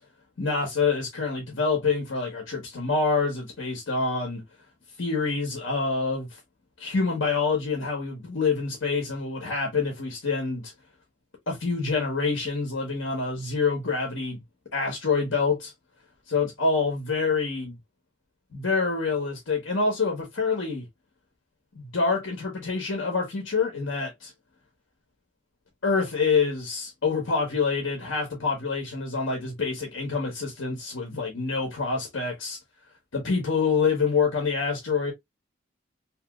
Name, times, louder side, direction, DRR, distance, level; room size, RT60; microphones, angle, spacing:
voice 1, 0.4-4.4 5.0-6.3 6.8-10.7 11.5-14.4 14.7-15.7 16.3-17.8 18.5-20.8 21.7-24.3 25.8-32.6 33.1-35.1, left 4 dB, 90° left, 1.1 m, -26 dB
2.9 x 2.8 x 2.3 m
head